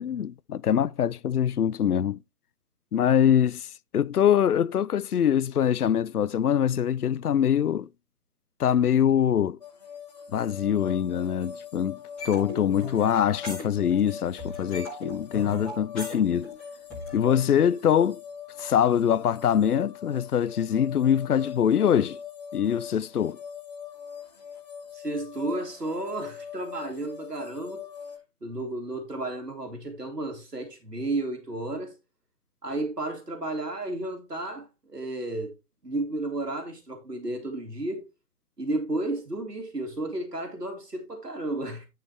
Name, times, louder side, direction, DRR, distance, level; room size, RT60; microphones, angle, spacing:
voice 1, 0.0-2.2 2.9-7.9 8.6-9.6 10.3-12.0 12.2-16.5 17.1-18.2 18.6-22.2 22.5-23.4, left 9 dB, 70° left, 0.5 m, -24 dB
sound 1, 9.6-28.2, left 7 dB, 25° left, 1.0 m, -42 dB
sound 2, 12.2-14.1 14.4-17.2, left 1 dB, ahead, 1.1 m, -38 dB
voice 2, 24.9-27.8 28.4-31.9 32.6-35.5 35.8-38.0 38.6-41.9, right 2 dB, 80° right, 2.8 m, -32 dB
10.5 x 5.6 x 3.1 m
figure-of-eight pair, 150°, 48 cm